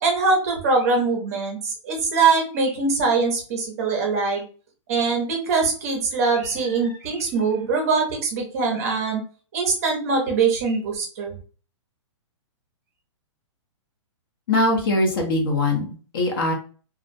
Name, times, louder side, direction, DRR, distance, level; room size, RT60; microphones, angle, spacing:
voice 1, 0.0-4.4 4.9-9.2 9.5-11.3, right 4 dB, 30° right, 1 dB, 0.6 m, -22 dB
voice 2, 14.5-16.5, left 2 dB, 45° left, 3 dB, 0.7 m, -22 dB
2.4 x 2.1 x 2.5 m, 0.38 s
hypercardioid pair, 170°, 16 cm